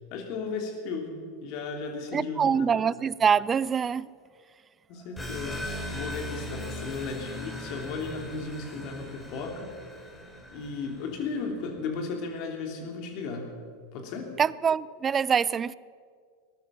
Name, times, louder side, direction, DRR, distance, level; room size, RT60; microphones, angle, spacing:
voice 1, 0.1-2.8 4.9-5.6 5.9-9.7 10.5-13.5 13.9-14.3, left 4 dB, 55° left, 3.1 m, -35 dB
voice 2, 2.1-4.1 14.4-15.7, right 7 dB, 25° right, 0.4 m, -25 dB
sound 1, 5.2-11.4, left 1 dB, 15° left, 3.3 m, -39 dB
19.0 x 12.5 x 5.8 m
hypercardioid pair, 90°, 0 cm